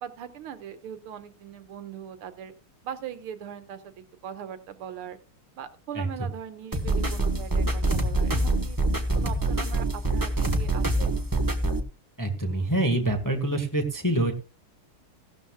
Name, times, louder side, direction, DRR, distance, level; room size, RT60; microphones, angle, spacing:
voice 1, 0.0-2.5 2.8-5.2 5.6-8.8 9.2-11.1, right 9 dB, 80° right, 9 dB, 2.0 m, -40 dB
sound 1, 6.7-11.8, right 2 dB, 15° right, 0.8 m, -25 dB
voice 2, 12.2-14.3, right 1 dB, 10° left, 4 dB, 1.2 m, -25 dB
16.5 x 12.0 x 2.3 m, 0.30 s
omnidirectional pair, 2.4 m